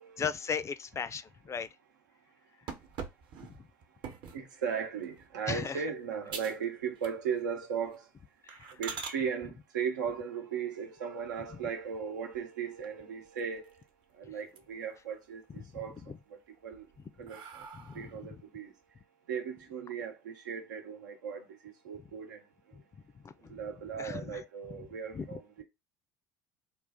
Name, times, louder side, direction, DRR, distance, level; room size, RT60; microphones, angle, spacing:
voice 1, 0.2-1.7 5.5-5.8 8.4-8.7 16.1-16.2 17.7-18.1 22.7-22.8 23.2-23.5 24.0-24.4 25.1-25.3, left 6 dB, 30° left, 0.5 m, -36 dB
sound 1, 2.7-4.5 5.0-5.3 5.8-5.9 6.3-6.7 7.0-7.5 7.8-8.0 8.5-9.2 11.2-11.9 12.3-12.4 12.8-12.9 13.2-14.0 14.4-15.0 15.4-16.0 16.5-18.3, right 6 dB, 55° right, 0.9 m, -44 dB
voice 2, 4.3-8.1 8.7-13.9 14.1-16.0 16.3-16.9 17.2-17.7 17.9-18.7 19.3-22.8 23.4-25.6, right 7 dB, 85° right, 0.9 m, -37 dB
3.9 x 2.4 x 3.5 m
hypercardioid pair, 70°, 10 cm